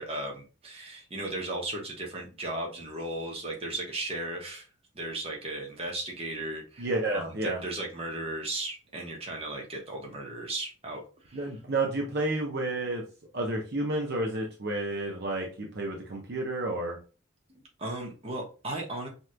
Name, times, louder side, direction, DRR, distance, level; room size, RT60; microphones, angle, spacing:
voice 1, 0.0-4.6 4.9-11.4 17.5-19.1, right 2 dB, 30° right, 0 dB, 1.2 m, -36 dB
voice 2, 6.8-7.6 11.3-13.0 13.3-17.0, right 2 dB, 55° right, 0 dB, 0.8 m, -30 dB
5.4 x 3.1 x 2.2 m, 0.35 s
head